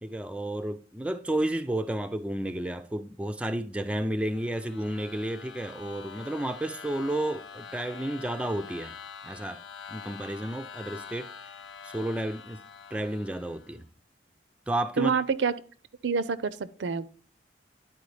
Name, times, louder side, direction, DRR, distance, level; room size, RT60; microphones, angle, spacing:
voice 1, 0.0-8.9 9.2-9.6 9.9-11.3 11.8-12.6 12.9-13.8 14.7-15.2, right 1 dB, 5° right, 0.3 m, -31 dB
sound 1, 4.1-13.8, left 6 dB, 85° left, 0.6 m, -45 dB
voice 2, 15.0-15.5 16.0-17.1, right 5 dB, 75° right, 0.4 m, -27 dB
10.5 x 4.4 x 3.2 m
head